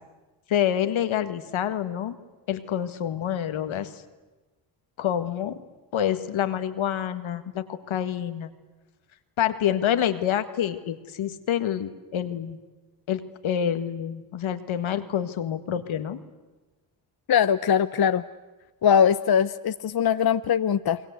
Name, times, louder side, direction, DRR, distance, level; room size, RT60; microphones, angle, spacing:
voice 1, 0.5-2.2 2.5-4.0 5.0-5.6 5.9-8.5 9.4-12.6 13.1-16.2, left 10 dB, 75° left, 10 dB, 1.8 m, -27 dB
voice 2, 17.3-18.2 18.8-21.0, left 8 dB, 50° left, 12 dB, 0.9 m, -21 dB
29.5 x 22.0 x 8.1 m, 1.2 s
supercardioid pair, 45°, 48 cm